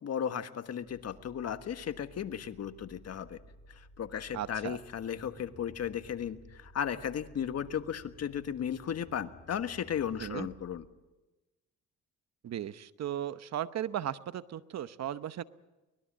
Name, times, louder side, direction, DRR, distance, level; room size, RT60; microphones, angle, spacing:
voice 1, 0.0-3.4 3.7-10.8, left 8 dB, 55° left, 9 dB, 1.5 m, -35 dB
sound 1, 0.7-10.7, equal, 30° left, 4.9 m, -56 dB
voice 2, 4.3-4.8 10.2-10.5 12.4-15.4, right 10 dB, 60° right, 13 dB, 0.9 m, -36 dB
24.0 x 20.5 x 7.5 m, 1.1 s
cardioid pair, 90°, 30 cm